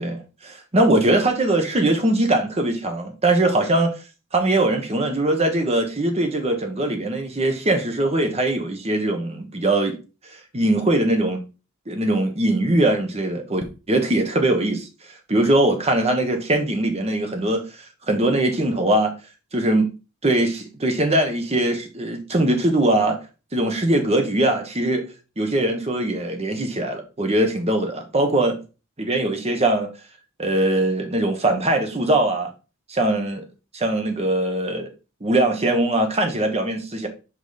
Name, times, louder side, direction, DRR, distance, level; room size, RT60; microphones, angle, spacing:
voice 1, 0.0-3.9 4.3-10.0 10.5-11.4 11.9-17.6 18.1-19.1 19.5-19.9 20.2-23.2 23.5-25.0 25.4-28.6 29.0-29.9 30.4-32.5 32.9-33.4 33.7-34.9 35.2-37.1, right 1 dB, 30° right, 1.1 m, -21 dB
5.3 x 5.0 x 4.0 m
head